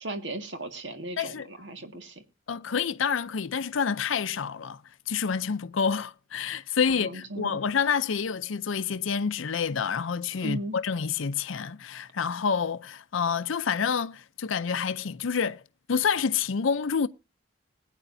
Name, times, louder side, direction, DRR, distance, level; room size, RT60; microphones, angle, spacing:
voice 1, 0.0-2.2 6.9-7.6 10.4-10.8, right 1 dB, 65° right, 1.8 m, -36 dB
voice 2, 1.2-1.5 2.5-4.8 5.1-15.6 15.9-17.1, left 6 dB, 75° left, 0.6 m, -28 dB
21.0 x 9.1 x 2.6 m
head